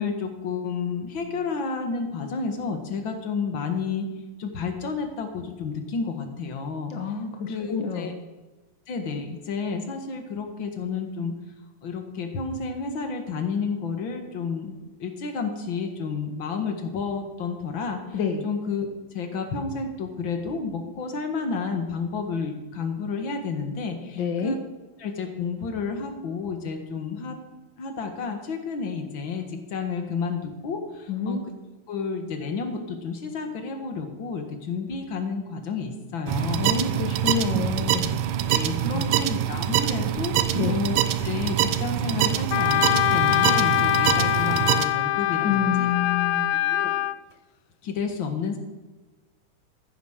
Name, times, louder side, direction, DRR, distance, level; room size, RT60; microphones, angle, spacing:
voice 1, 0.0-4.1 4.4-6.9 7.5-8.1 8.9-11.3 11.8-18.9 19.1-24.6 25.0-27.4 27.8-31.4 31.9-36.7 38.5-40.4 40.7-45.9 46.6-47.0 47.8-48.6, left 5 dB, 45° left, 5 dB, 1.9 m, -31 dB
voice 2, 6.9-8.2 18.1-18.4 24.2-24.5 31.1-31.4 36.6-38.2 38.9-39.2 40.5-40.8 45.4-46.6, left 6 dB, 65° left, 4 dB, 1.2 m, -28 dB
sound 1, 36.3-44.9, right 11 dB, 80° right, 2.3 m, -25 dB
Wind instrument woodwind instrument, 42.5-47.2, left 14 dB, 85° left, 2.2 m, -23 dB
14.5 x 9.4 x 6.6 m, 1.2 s
omnidirectional pair, 3.8 m